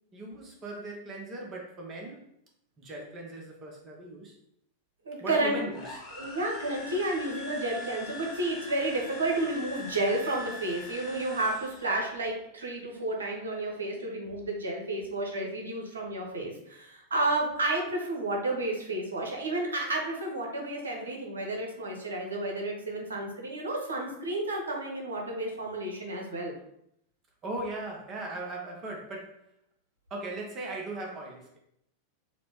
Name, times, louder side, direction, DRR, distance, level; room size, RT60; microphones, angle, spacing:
voice 1, 0.1-2.3 2.8-4.4 5.2-6.0 27.4-29.4 30.1-31.6, right 2 dB, 30° right, 0 dB, 0.7 m, -38 dB
voice 2, 5.0-5.6 6.1-26.5, right 2 dB, 70° right, 0 dB, 0.8 m, -31 dB
sound 1, 5.7-12.0, left 1 dB, 35° left, 1.0 m, -43 dB
4.1 x 2.1 x 3.0 m, 0.75 s
figure-of-eight pair, 90°, 0 cm